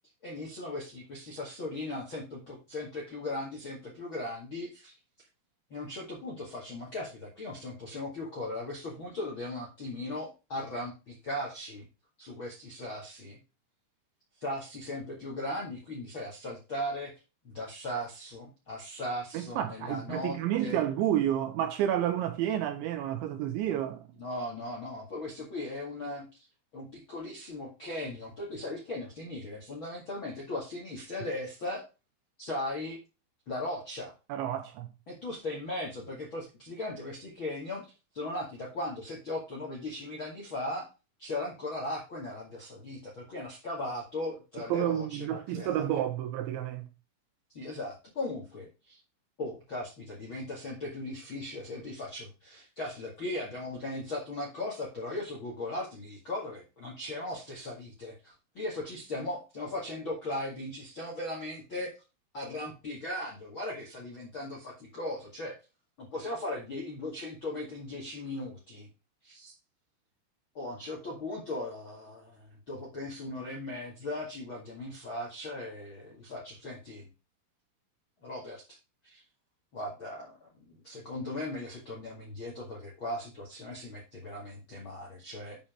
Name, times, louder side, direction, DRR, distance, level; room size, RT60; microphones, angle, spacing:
voice 1, 0.2-4.9 5.7-11.8 12.2-13.4 14.4-17.1 17.4-20.8 24.2-26.4 26.7-31.8 32.4-33.0 33.5-34.1 35.1-37.9 38.1-40.9 41.2-46.0 47.5-49.0 49.4-61.9 62.3-65.6 66.0-68.9 69.2-69.5 70.5-77.1 78.2-78.6 79.0-79.2 79.7-85.6, left 1 dB, 55° left, 1.4 m, -38 dB
voice 2, 19.3-24.1 34.3-34.9 44.7-46.9, right 11 dB, 80° right, 2.8 m, -30 dB
8.6 x 5.6 x 4.9 m
omnidirectional pair, 5.9 m